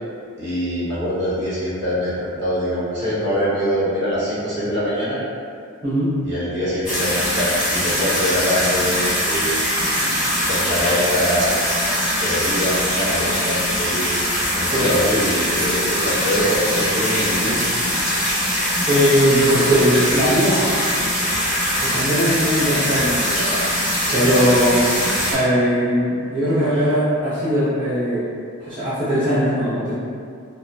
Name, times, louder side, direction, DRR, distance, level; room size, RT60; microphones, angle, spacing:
voice 1, 0.4-5.2 6.2-9.5 10.5-11.6 12.2-14.2 14.5-17.5 26.7-26.8, equal, 50° right, -10 dB, 0.9 m, -23 dB
voice 2, 5.8-6.1 14.7-14.9 18.1-18.4 18.9-20.9 21.8-23.6 24.1-24.9 25.3-28.2 28.6-29.9, equal, 20° right, -14 dB, 0.5 m, -19 dB
sound 1, 6.8-25.3, equal, ahead, 0.9 m, -22 dB
2.1 x 2.1 x 3.8 m, 2.3 s
head